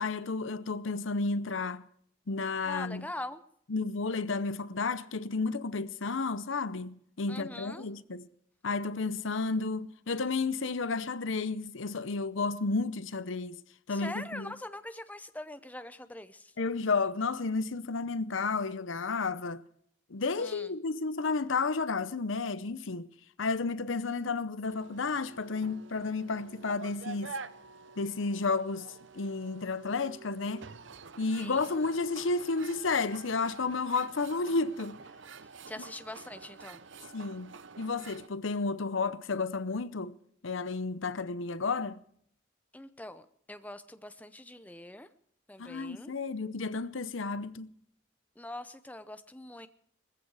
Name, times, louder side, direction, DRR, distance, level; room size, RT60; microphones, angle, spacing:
voice 1, 0.0-1.9 2.3-3.1 3.7-8.3 8.6-13.6 13.9-14.6 16.6-19.6 20.1-23.1 23.4-27.3 28.0-30.7 31.2-35.0 35.8-35.9 37.1-40.2 40.4-42.0 45.6-47.7, left 4 dB, 70° left, 0.7 m, -32 dB
voice 2, 2.6-3.4 7.3-7.8 13.9-16.5 20.4-20.7 31.4-31.8 35.7-36.8 42.7-43.2 43.5-45.1 45.5-46.1 48.4-49.7, left 1 dB, 5° left, 0.6 m, -43 dB
sound 1, 24.7-38.3, right 5 dB, 60° right, 0.7 m, -48 dB
20.0 x 15.0 x 4.8 m
head